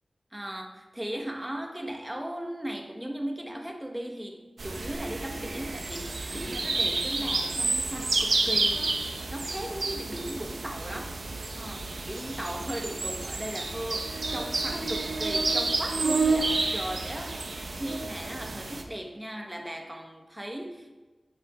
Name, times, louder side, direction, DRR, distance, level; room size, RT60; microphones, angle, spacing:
voice 1, 0.3-8.9 9.3-11.2 11.6-17.4 17.7-20.9, right 1 dB, 15° right, 3 dB, 1.3 m, -37 dB
sound 1, 4.6-18.8, right 3 dB, 70° right, 1.0 m, -30 dB
9.5 x 7.6 x 3.7 m, 1.2 s
wide cardioid pair, 65°, 0 cm